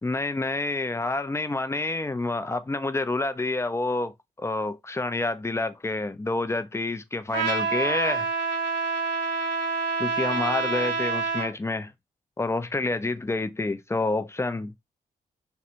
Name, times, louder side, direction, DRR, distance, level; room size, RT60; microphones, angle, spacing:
voice 1, 0.0-8.3 10.0-11.9 12.4-14.7, left 2 dB, 15° left, 0.4 m, -28 dB
Trumpet, 7.3-11.5, right 4 dB, 75° right, 0.7 m, -27 dB
2.4 x 2.1 x 2.8 m
hypercardioid pair, 40°, 19 cm